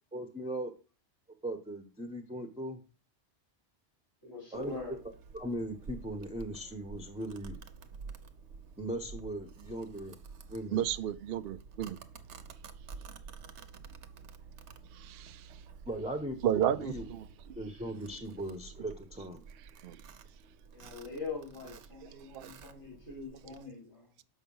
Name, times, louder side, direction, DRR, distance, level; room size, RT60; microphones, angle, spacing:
voice 1, 0.1-0.7 1.4-2.8 4.5-4.8 5.3-7.6 8.8-10.2 10.5-10.8 15.9-17.0 17.6-19.4, right 1 dB, 5° right, 0.8 m, -38 dB
voice 2, 4.2-5.0 20.7-24.1, left 4 dB, 65° left, 3.7 m, -43 dB
Domestic sounds home sounds, 4.5-23.6, right 5 dB, 85° right, 1.1 m, -50 dB
voice 3, 10.7-12.0 14.9-15.6 16.4-17.9 18.4-18.5 18.8-18.9 19.5-20.0 21.6-22.5 23.3-23.6, right 10 dB, 65° right, 0.7 m, -35 dB
7.2 x 5.6 x 5.4 m
omnidirectional pair, 1.1 m